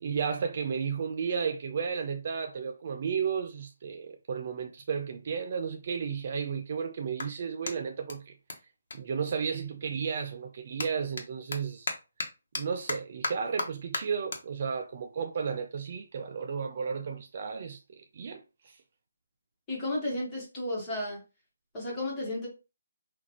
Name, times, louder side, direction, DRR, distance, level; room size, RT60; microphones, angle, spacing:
voice 1, 0.0-8.4 8.9-11.9 12.6-18.8, right 6 dB, 35° right, 0.4 m, -33 dB
Clapping, 6.2-9.9 10.2-16.8, left 3 dB, 55° left, 1.1 m, -40 dB
voice 2, 19.7-21.2 21.7-22.5, left 1 dB, 10° left, 1.3 m, -33 dB
5.8 x 2.5 x 2.9 m
hypercardioid pair, 175°, 0 cm